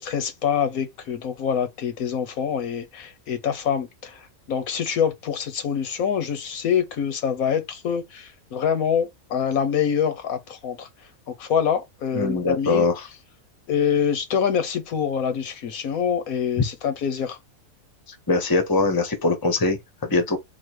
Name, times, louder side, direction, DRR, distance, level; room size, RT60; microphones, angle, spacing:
voice 1, 0.0-10.9 11.3-12.9 13.7-17.4, left 7 dB, 85° left, 1.4 m, -25 dB
voice 2, 12.1-13.0 16.6-16.7 18.1-20.4, left 3 dB, 20° left, 0.7 m, -22 dB
4.0 x 2.4 x 4.6 m
omnidirectional pair, 1.4 m